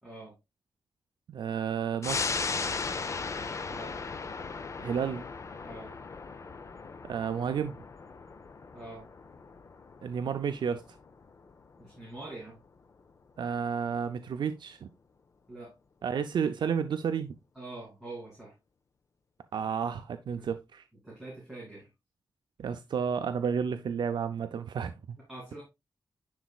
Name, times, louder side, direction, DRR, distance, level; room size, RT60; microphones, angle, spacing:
voice 1, 0.0-0.3 3.7-3.9 5.6-5.9 8.7-9.0 11.8-12.6 15.5-15.7 17.6-18.5 20.4-20.5 21.0-21.9 25.3-25.6, right 2 dB, 5° right, 2.2 m, -44 dB
voice 2, 1.3-2.4 4.8-5.2 7.0-7.8 10.0-10.8 13.4-14.9 16.0-17.4 19.5-20.8 22.6-25.2, right 7 dB, 75° right, 0.4 m, -31 dB
sound 1, 2.0-13.0 13.4-13.5, left 4 dB, 40° left, 0.5 m, -37 dB
10.5 x 4.0 x 2.3 m
wide cardioid pair, 150°, 8 cm